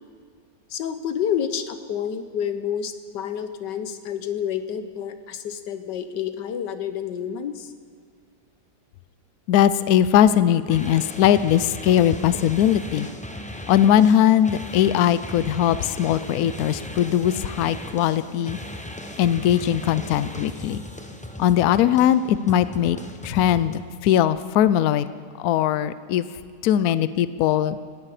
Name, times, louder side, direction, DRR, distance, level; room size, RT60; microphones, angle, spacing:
voice 1, 0.7-7.7, left 8 dB, 85° left, 10 dB, 1.5 m, -29 dB
voice 2, 9.5-13.1 13.7-18.6 19.2-20.8 21.4-23.0 23.2-25.1 25.4-26.2 26.6-27.8, left 10 dB, 70° left, 14 dB, 1.0 m, -20 dB
sound 1, 10.7-23.8, equal, 10° left, 0.4 m, -37 dB
18.0 x 13.5 x 4.9 m, 2.1 s
omnidirectional pair, 1.8 m